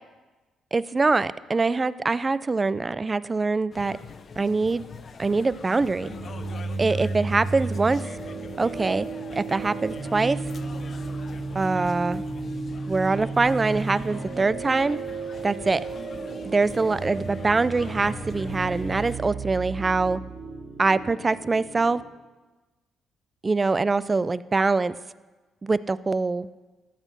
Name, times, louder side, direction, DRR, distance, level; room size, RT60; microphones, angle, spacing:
voice 1, 0.7-4.0 4.4-4.8 5.2-6.2 6.8-8.0 8.6-9.1 9.3-10.4 11.5-12.2 12.9-15.0 15.4-15.8 16.4-20.2 20.8-22.0 23.4-25.0 25.6-26.5, right 3 dB, 25° right, 17 dB, 0.3 m, -24 dB
sound 1, 3.7-19.2, left 5 dB, 45° left, 0.5 m, -43 dB
sound 2, 5.9-22.0, right 3 dB, 55° right, 2.4 m, -34 dB
13.0 x 4.5 x 6.0 m, 1.2 s
cardioid pair, 90°, 0 cm